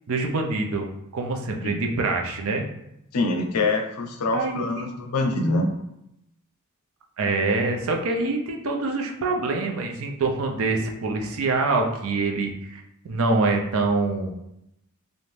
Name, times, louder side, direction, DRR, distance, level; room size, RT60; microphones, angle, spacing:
voice 1, 0.1-2.6 4.3-4.9 7.2-14.3, right 3 dB, 65° right, 3 dB, 0.4 m, -25 dB
voice 2, 3.1-5.7, left 2 dB, 90° left, 3 dB, 0.5 m, -24 dB
2.5 x 2.1 x 3.2 m, 0.81 s
head